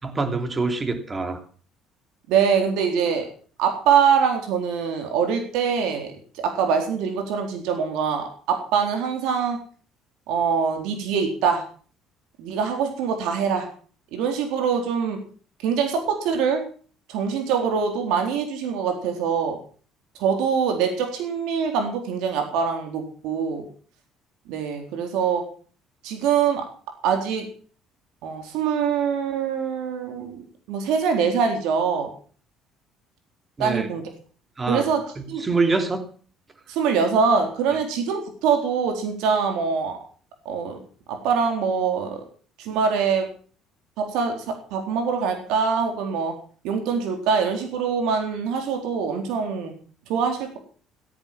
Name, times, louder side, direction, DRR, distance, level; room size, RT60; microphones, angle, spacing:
voice 1, 0.0-1.4 33.6-33.9 34.6-34.9 35.2-36.1, right 3 dB, 25° right, 7 dB, 3.0 m, -25 dB
voice 2, 2.3-3.3 3.6-9.6 10.3-11.6 12.4-13.7 14.1-15.2 15.6-16.7 17.1-19.6 20.2-23.6 24.5-25.4 26.0-26.6 27.0-27.5 28.2-30.4 30.7-32.1 33.6-34.0 34.7-35.0 35.3-35.4 36.7-40.0 40.5-40.8 41.1-42.2 42.6-43.3 44.0-44.4 44.7-46.3 46.6-49.7 50.1-50.6, right 6 dB, 80° right, 4 dB, 3.9 m, -23 dB
17.0 x 9.1 x 7.5 m, 0.44 s
cardioid pair, 100°, 0 cm